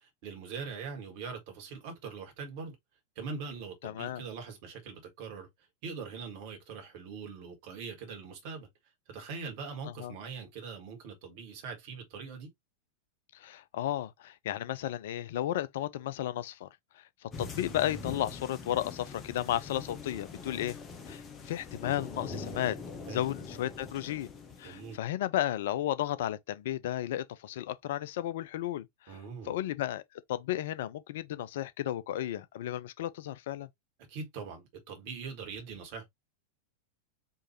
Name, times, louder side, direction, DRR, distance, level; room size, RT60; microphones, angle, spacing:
voice 1, 0.0-2.7 3.1-5.5 5.8-8.7 9.1-12.5 23.1-23.2 24.6-25.0 29.1-29.6 34.1-36.1, right 5 dB, 45° right, 1.7 m, -42 dB
voice 2, 3.8-4.2 10.0-10.1 13.3-16.7 17.2-20.8 21.1-22.8 23.1-24.3 24.6-29.2 29.5-30.0 30.3-33.7, left 12 dB, 55° left, 0.4 m, -33 dB
sound 1, 17.3-25.0, left 4 dB, 25° left, 1.1 m, -43 dB
4.5 x 3.0 x 2.9 m
figure-of-eight pair, 90°, 0 cm